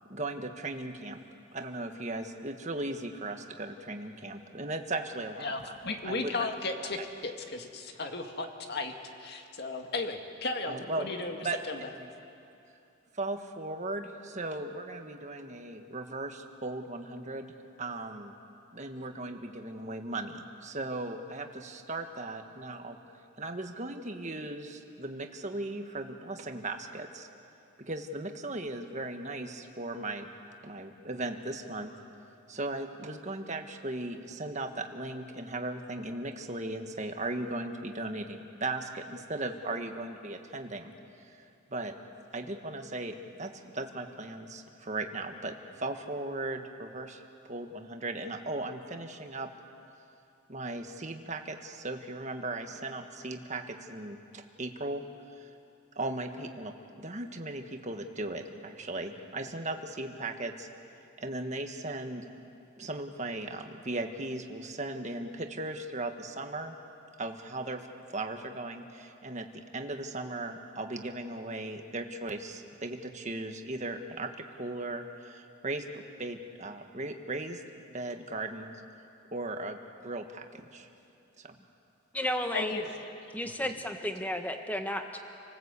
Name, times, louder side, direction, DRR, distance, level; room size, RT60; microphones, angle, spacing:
voice 1, 0.1-1.2 1.5-5.7 6.0-6.5 6.8-6.9 10.7-11.1 11.4-12.1 13.1-17.5 17.8-18.3 18.7-23.0 23.4-27.3 27.8-30.3 30.6-31.9 32.5-40.9 41.2-41.4 41.7-41.9 42.3-47.2 47.5-49.5 50.5-55.5 55.9-60.7 61.2-62.3 62.8-66.8 67.2-69.5 69.7-74.3 74.6-77.6 77.9-78.8 79.3-80.9 81.4-81.6, right 2 dB, 35° right, 5 dB, 1.5 m, -37 dB
voice 2, 5.4-8.9 9.2-11.4 11.7-11.8 82.5-83.0, left 3 dB, 55° left, 4 dB, 2.0 m, -35 dB
voice 3, 82.1-82.8 83.3-85.2, left 1 dB, 10° left, 5 dB, 1.4 m, -33 dB
29.0 x 19.5 x 8.3 m, 2.6 s
head